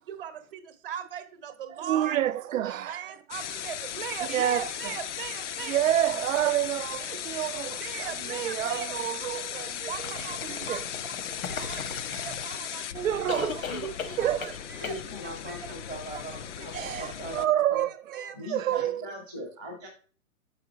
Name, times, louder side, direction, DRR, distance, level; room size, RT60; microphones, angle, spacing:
voice 1, 0.1-2.2 2.6-5.9 7.8-8.9 9.8-13.0 13.6-13.7 14.2-15.7 16.1-17.1 17.4-18.4, right 9 dB, 40° right, 0.8 m, -40 dB
voice 2, 1.8-3.0 4.3-4.7 5.7-10.1 10.5-10.8 12.9-14.5 16.7-19.1, right 11 dB, 70° right, 0.6 m, -29 dB
sound 1, 3.3-17.5, left 10 dB, 60° left, 0.5 m, -37 dB
sound 2, 9.9-12.8 13.3-14.6 14.8-15.0, left 5 dB, 85° left, 1.1 m, -37 dB
voice 3, 14.8-17.8 18.3-19.9, equal, 5° left, 0.4 m, -40 dB
6.3 x 4.8 x 4.1 m
hypercardioid pair, 170°, 41 cm